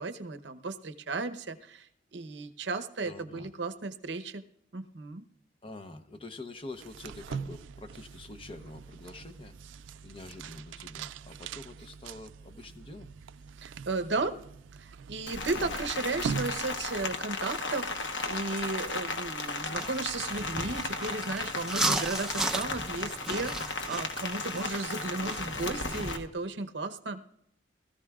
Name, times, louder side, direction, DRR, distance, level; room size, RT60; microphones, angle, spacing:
voice 1, 0.0-4.4 4.7-5.2 13.6-14.4 14.8-27.2, right 3 dB, 65° right, 9 dB, 0.9 m, -35 dB
voice 2, 3.0-3.5 5.6-13.1, left 2 dB, 30° left, 7 dB, 0.8 m, -46 dB
sound 1, 6.7-17.3, right 6 dB, 90° right, 0.4 m, -42 dB
Rain, 15.3-26.2, left 3 dB, 75° left, 1.1 m, -35 dB
sound 2, 19.7-26.2, right 2 dB, 5° right, 0.6 m, -36 dB
19.5 x 14.0 x 2.4 m, 0.72 s
head